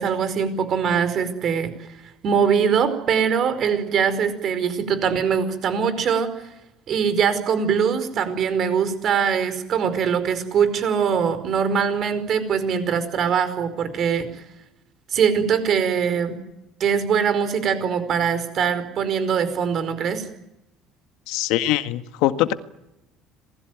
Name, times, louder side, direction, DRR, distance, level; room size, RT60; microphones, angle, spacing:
voice 1, 0.0-1.9 2.2-6.3 6.9-14.4 15.1-16.4 16.8-20.2, right 7 dB, 40° right, 11 dB, 4.9 m, -22 dB
voice 2, 21.3-22.5, left 14 dB, 75° left, 9 dB, 1.7 m, -22 dB
27.5 x 20.5 x 9.4 m, 0.90 s
cardioid pair, 165°, 0 cm